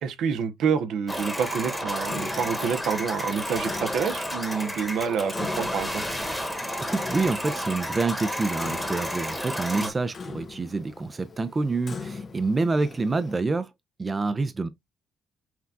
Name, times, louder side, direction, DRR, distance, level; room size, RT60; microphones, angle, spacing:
voice 1, 0.0-6.0 9.8-9.9, right 6 dB, 75° right, 0.7 m, -28 dB
sound 1, 1.1-9.9, equal, ahead, 1.1 m, -31 dB
Clock, 2.1-13.4, left 4 dB, 40° left, 0.6 m, -42 dB
voice 2, 6.5-13.7 14.0-14.7, right 3 dB, 30° right, 0.5 m, -27 dB
5.8 x 2.3 x 2.6 m
cardioid pair, 90°, 0 cm